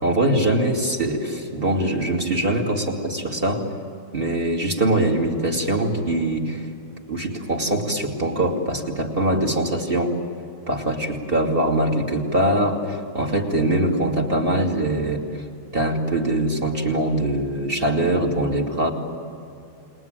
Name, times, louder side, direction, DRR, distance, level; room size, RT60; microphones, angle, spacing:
voice 1, 0.0-3.7 4.1-6.7 7.1-10.1 10.7-15.2 15.7-18.9, right 1 dB, 25° right, 1 dB, 2.7 m, -22 dB
30.0 x 20.5 x 9.1 m, 2.6 s
omnidirectional pair, 2.3 m